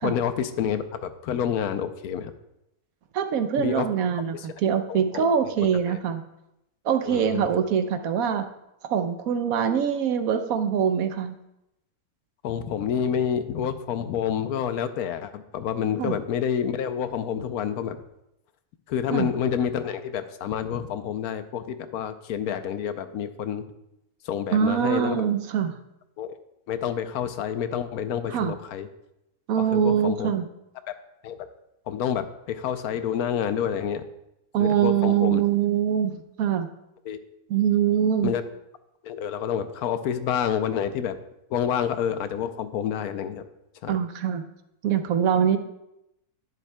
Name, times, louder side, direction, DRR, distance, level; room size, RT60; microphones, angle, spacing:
voice 1, 0.0-2.3 3.6-3.9 4.3-4.5 4.9-5.5 5.9-6.0 7.1-7.5 12.4-18.0 18.9-23.6 24.2-25.3 26.2-26.4 26.7-28.9 29.6-30.3 30.9-31.0 31.2-31.5 31.9-34.0 34.6-35.4 37.1-37.2 38.2-38.4 39.0-41.2 41.5-43.4 43.8-44.0, left 8 dB, 80° left, 10 dB, 1.1 m, -28 dB
voice 2, 3.1-4.3 4.6-6.2 6.8-8.5 8.9-11.4 16.0-16.1 19.1-19.3 24.5-25.8 28.3-28.5 29.5-30.4 34.5-36.7 37.5-38.3 43.9-44.4 44.8-45.6, right 8 dB, 70° right, 8 dB, 1.1 m, -23 dB
10.5 x 10.0 x 2.2 m, 0.86 s
omnidirectional pair, 1.6 m